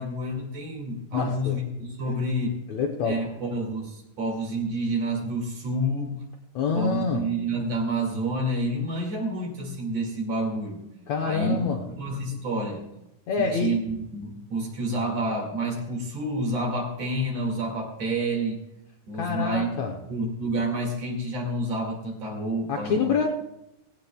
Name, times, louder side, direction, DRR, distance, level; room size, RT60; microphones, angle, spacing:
voice 1, 0.0-2.6 3.0-6.2 6.7-10.8 11.2-12.8 13.4-18.6 19.1-19.7 20.1-23.2, right 1 dB, 50° right, 1 dB, 3.0 m, -29 dB
voice 2, 1.1-1.6 2.7-3.2 6.6-7.3 11.1-11.9 13.3-13.9 19.2-20.0 22.7-23.3, left 5 dB, 70° left, 2 dB, 1.8 m, -26 dB
17.0 x 16.0 x 2.3 m, 0.90 s
omnidirectional pair, 4.0 m